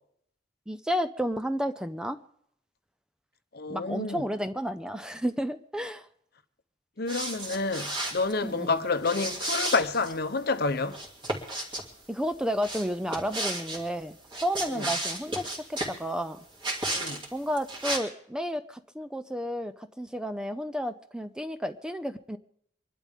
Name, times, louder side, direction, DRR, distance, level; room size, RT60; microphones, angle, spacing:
voice 1, 0.7-2.2 3.7-6.1 8.4-8.8 12.1-16.4 17.3-22.4, equal, 5° right, 0.5 m, -32 dB
voice 2, 3.5-4.2 7.0-11.0 14.7-14.9 16.9-17.2, left 3 dB, 55° left, 0.9 m, -29 dB
sound 1, 7.1-8.3 9.0-10.1 10.9-11.8 12.6-13.8 14.2-16.0 16.6-17.3 17.6-18.0, right 1 dB, 25° right, 2.6 m, -33 dB
25.5 x 12.0 x 3.6 m
head